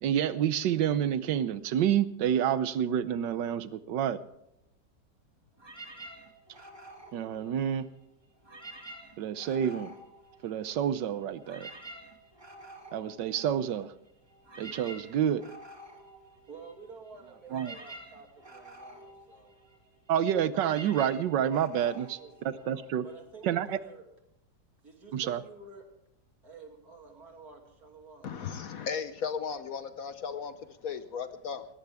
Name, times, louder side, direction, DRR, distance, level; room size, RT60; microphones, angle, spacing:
voice 1, 0.0-4.2 7.1-7.9 9.2-9.9 10.4-11.7 12.9-13.9 14.6-15.4 17.5-17.7 20.1-22.2 22.4-23.0 23.4-23.8 25.1-25.4, right 9 dB, 85° right, 1.4 m, -28 dB
sound 1, 5.6-8.0 8.4-10.9 11.2-23.1, right 1 dB, 15° right, 2.0 m, -49 dB
voice 2, 16.5-19.6 21.9-24.1 24.8-25.9 26.4-28.3, right 4 dB, 55° right, 3.2 m, -50 dB
voice 3, 28.2-31.7, left 6 dB, 60° left, 1.1 m, -36 dB
21.0 x 17.5 x 3.5 m
omnidirectional pair, 1.9 m